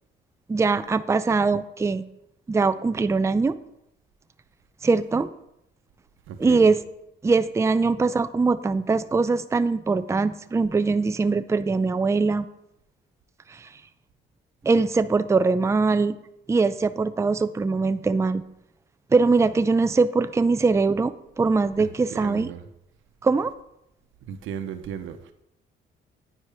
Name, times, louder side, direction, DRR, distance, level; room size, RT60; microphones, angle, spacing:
voice 1, 0.5-2.0 2.5-3.6 4.8-5.3 6.4-6.8 7.2-12.5 13.5-13.7 14.6-16.2 16.5-18.4 19.1-22.5 23.2-23.5, right 4 dB, 15° right, 0.4 m, -22 dB
voice 2, 6.3-6.7 21.8-22.7 24.3-25.3, right 8 dB, 85° right, 0.9 m, -36 dB
9.7 x 9.6 x 3.5 m
cardioid pair, 90°, 20 cm